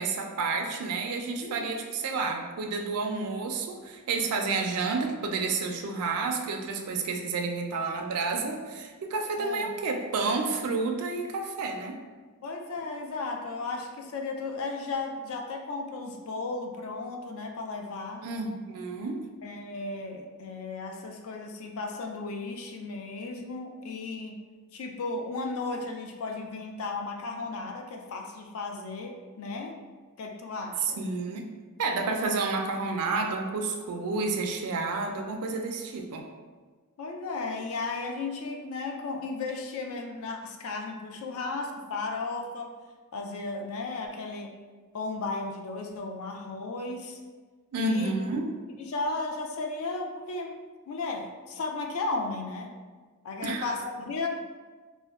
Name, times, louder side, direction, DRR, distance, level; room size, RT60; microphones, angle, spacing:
voice 1, 0.0-12.0 18.2-19.2 31.0-31.5 31.8-36.3 47.7-48.5 53.4-53.7, right 3 dB, 80° right, 3 dB, 0.4 m, -30 dB
voice 2, 9.4-9.8 12.4-18.2 19.4-24.4 24.7-29.8 30.2-31.1 37.0-42.7 43.1-44.5 44.9-47.2 47.8-48.1 48.8-50.6 50.9-52.7 53.2-54.3, left 3 dB, 65° left, 2 dB, 0.4 m, -35 dB
4.2 x 2.1 x 2.3 m, 1.4 s
head